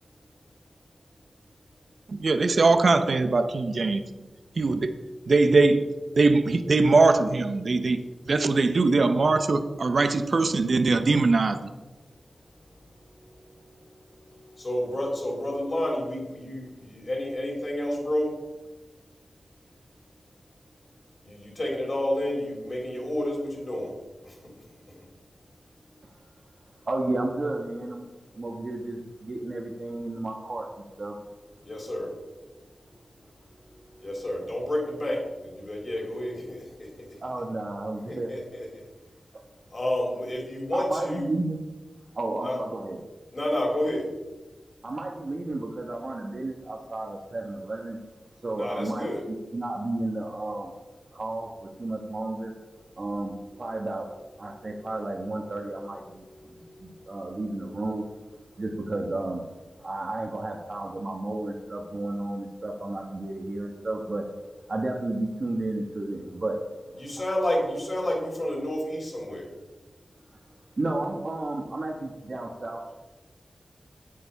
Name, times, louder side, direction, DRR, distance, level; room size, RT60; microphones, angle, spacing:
voice 1, 2.1-4.0 4.6-4.9 5.3-5.8 6.2-8.0 8.3-11.7, right 3 dB, 65° right, 9 dB, 0.8 m, -21 dB
voice 2, 14.6-18.3 21.2-23.9 24.2-24.3 31.6-32.1 34.0-36.6 38.1-38.7 39.7-41.3 42.4-42.6 43.3-44.0 48.5-49.2 67.0-69.5, left 1 dB, 40° left, -2 dB, 4.1 m, -30 dB
voice 3, 26.8-28.1 28.3-31.2 37.2-38.3 39.3-39.4 40.7-41.6 42.1-43.0 44.8-48.0 48.4-50.7 51.1-52.5 53.0-54.1 54.4-58.0 58.6-59.5 59.8-64.3 64.7-66.6 70.8-72.9, right 2 dB, 50° right, 1 dB, 1.3 m, -32 dB
9.5 x 8.5 x 5.6 m, 1.2 s
wide cardioid pair, 85°, 0 cm